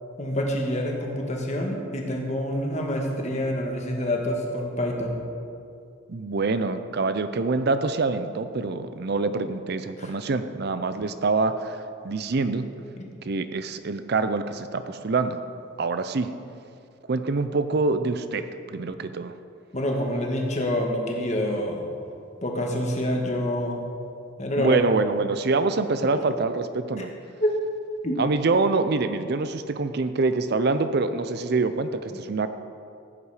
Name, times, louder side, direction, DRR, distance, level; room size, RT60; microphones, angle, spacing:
voice 1, 0.2-5.2 10.0-10.1 19.7-21.9 22.4-23.8 24.4-24.8 27.0-27.1 27.4-27.5 28.0-28.2, left 1 dB, 35° left, 1 dB, 1.6 m, -27 dB
voice 2, 6.1-12.7 13.3-15.4 15.8-16.3 17.1-19.3 24.6-27.1 28.2-32.5, right 3 dB, 55° right, 10 dB, 0.5 m, -25 dB
15.0 x 8.3 x 5.0 m, 2.5 s
head